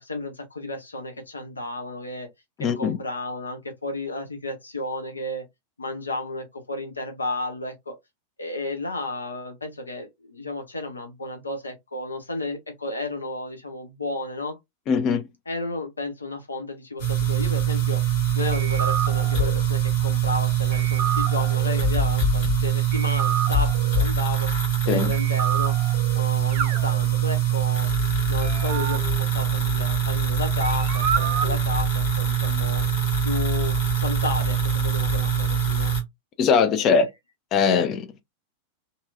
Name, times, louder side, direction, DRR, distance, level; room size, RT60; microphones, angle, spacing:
voice 1, 0.0-2.3 2.8-5.4 5.8-7.9 8.4-14.6 15.5-24.5 24.8-25.7 26.1-27.9 28.3-32.8 33.2-35.9 36.8-37.1, left 2 dB, 80° left, 0.7 m, -32 dB
voice 2, 2.6-3.0 14.9-15.2 24.9-25.1 36.4-37.1 37.5-38.2, left 6 dB, 35° left, 0.5 m, -21 dB
sound 1, 17.0-36.0, right 7 dB, 50° left, 1.5 m, -23 dB
sound 2, 18.5-19.6 20.7-21.8 22.9-24.0 25.1-26.2 26.5-27.6 28.4-30.3 30.6-31.6, right 8 dB, 50° right, 0.5 m, -30 dB
2.8 x 2.7 x 2.4 m
figure-of-eight pair, 90°, 0 cm